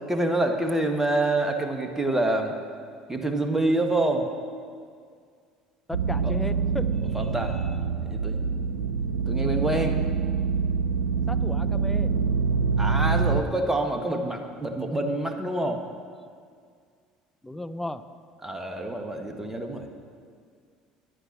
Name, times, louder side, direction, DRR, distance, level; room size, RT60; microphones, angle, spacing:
voice 1, 0.0-2.5 3.1-4.3 6.2-6.3 7.0-7.6 8.0-8.5 9.3-10.0 12.8-15.8 18.4-19.9, right 2 dB, 15° right, 4 dB, 1.8 m, -27 dB
voice 2, 5.9-6.9 11.3-12.1 17.4-18.0, left 1 dB, 10° left, 10 dB, 0.7 m, -34 dB
sound 1, 5.9-13.4, right 5 dB, 85° right, 0.7 m, -25 dB
13.0 x 10.0 x 6.1 m, 2.1 s
hypercardioid pair, 65°, 3 cm